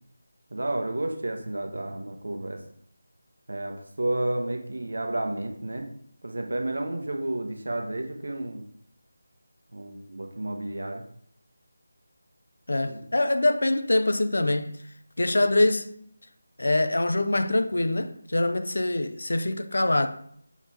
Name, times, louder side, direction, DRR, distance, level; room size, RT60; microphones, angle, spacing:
voice 1, 0.5-2.6 3.5-5.9 6.2-8.7 9.7-11.0 12.8-13.0, right 1 dB, 60° right, 1.1 m, -31 dB
voice 2, 12.7-14.8 15.2-15.9 16.6-20.1, left 2 dB, 60° left, 0.7 m, -24 dB
7.1 x 3.7 x 4.3 m
figure-of-eight pair, 160°, 0 cm